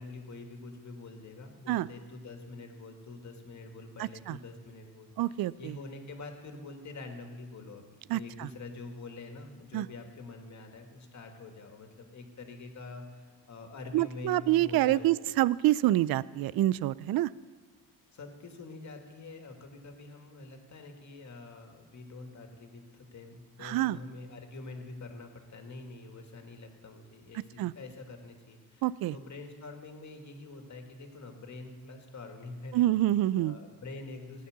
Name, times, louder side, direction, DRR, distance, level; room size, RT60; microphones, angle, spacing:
voice 1, 0.0-15.4 18.1-28.9 29.1-32.9 33.3-34.5, left 3 dB, 45° left, 4 dB, 2.4 m, -46 dB
voice 2, 4.0-4.4 5.2-5.7 8.1-8.5 9.7-9.9 13.9-17.3 23.6-24.0 27.6-27.7 28.8-29.2 32.7-33.6, right 15 dB, 65° right, 20 dB, 0.5 m, -27 dB
16.0 x 9.7 x 6.7 m, 1.5 s
cardioid pair, 85°, 38 cm